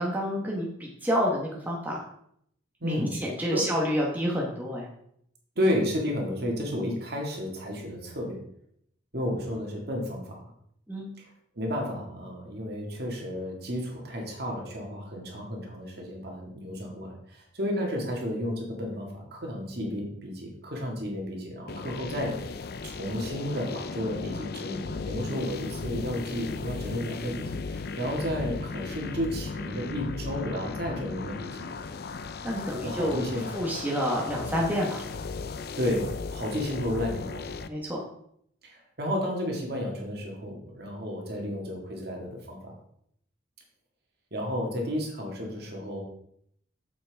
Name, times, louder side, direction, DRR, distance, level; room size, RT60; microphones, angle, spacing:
voice 1, 0.0-2.0 2.8-4.9 10.9-11.1 32.4-33.2 33.5-35.0 37.7-38.0, equal, 10° right, -3 dB, 1.2 m, -28 dB
voice 2, 2.8-3.2 3.5-3.7 5.6-8.4 9.1-10.4 11.2-11.3 11.6-22.6 22.8-31.7 32.8-33.5 34.0-34.1 35.8-37.5 38.6-42.7 44.3-46.0, equal, 55° right, 0 dB, 2.0 m, -32 dB
sound 1, 21.7-37.7, left 4 dB, 55° left, 0.5 m, -36 dB
8.6 x 7.2 x 3.5 m, 0.70 s
head